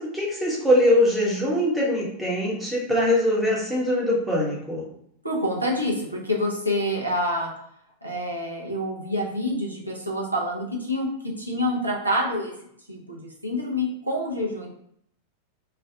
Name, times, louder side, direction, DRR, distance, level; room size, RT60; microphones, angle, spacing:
voice 1, 0.0-4.8, left 1 dB, ahead, -5 dB, 1.1 m, -22 dB
voice 2, 5.2-7.5 8.0-11.1 11.4-12.5 12.9-14.7, left 1 dB, 85° right, -2 dB, 0.7 m, -27 dB
3.3 x 2.3 x 3.4 m, 0.71 s
figure-of-eight pair, 90°, 0 cm